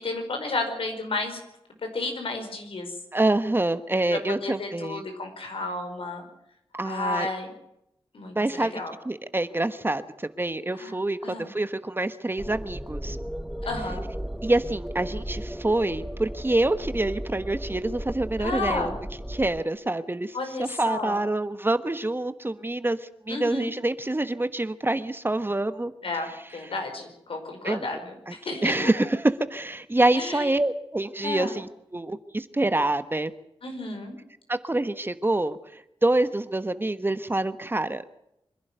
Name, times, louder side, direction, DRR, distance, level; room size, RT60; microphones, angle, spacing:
voice 1, 0.0-1.4 1.8-3.0 4.1-6.2 6.8-7.5 8.1-8.9 10.7-10.9 11.2-11.5 13.6-14.0 16.9-17.1 18.4-18.9 20.3-21.2 23.3-23.7 26.0-29.1 30.1-30.5 31.2-31.6 33.6-34.2, left 3 dB, 75° left, 4 dB, 5.1 m, -32 dB
voice 2, 3.1-5.0 6.7-7.3 8.3-8.7 9.0-13.2 14.4-18.9 19.3-25.9 27.6-27.9 28.3-28.4 28.6-33.3 34.5-38.0, right 2 dB, 25° right, 12 dB, 1.2 m, -26 dB
sound 1, 12.4-19.6, equal, 5° right, 0.9 m, -35 dB
25.5 x 11.5 x 9.3 m, 0.81 s
cardioid pair, 65°, 9 cm